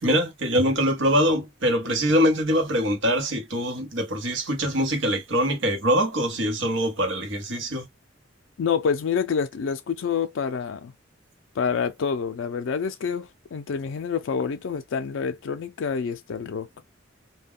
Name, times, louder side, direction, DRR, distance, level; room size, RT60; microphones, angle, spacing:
voice 1, 0.0-7.9, equal, 70° right, 1.0 m, -23 dB
voice 2, 8.6-10.9 11.6-16.7, left 6 dB, 70° left, 0.4 m, -27 dB
2.2 x 2.2 x 3.6 m
head